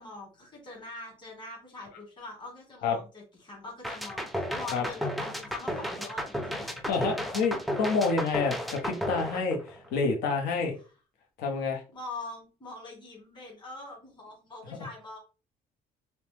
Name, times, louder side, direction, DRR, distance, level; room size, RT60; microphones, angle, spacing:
voice 1, 0.0-6.8 10.8-10.9 11.9-15.2, left 3 dB, 25° left, -1 dB, 1.7 m, -43 dB
sound 1, 3.8-10.0, equal, ahead, 0.4 m, -33 dB
voice 2, 6.9-10.7 11.4-11.8, left 4 dB, 85° left, 1 dB, 0.7 m, -28 dB
2.9 x 2.1 x 3.2 m, 0.33 s
cardioid pair, 110°, 17 cm